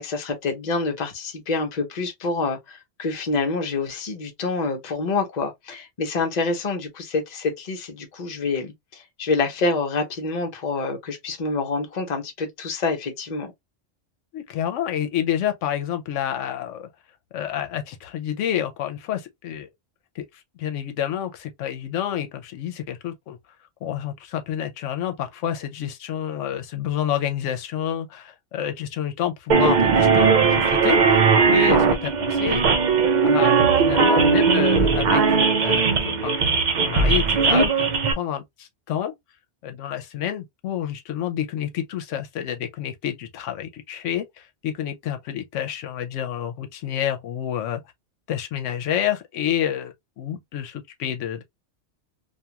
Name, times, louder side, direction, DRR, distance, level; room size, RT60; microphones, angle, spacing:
voice 1, 0.0-13.5, left 3 dB, 40° left, 0.8 m, -27 dB
voice 2, 14.3-16.9 17.3-19.7 20.2-20.3 20.6-23.4 23.8-32.6 33.2-33.5 33.8-37.9 38.2-39.1 39.6-47.8 48.3-51.4, left 10 dB, 85° left, 0.9 m, -28 dB
sound 1, 29.5-38.1, right 5 dB, 55° right, 0.5 m, -18 dB
2.5 x 2.3 x 2.8 m
omnidirectional pair, 1.2 m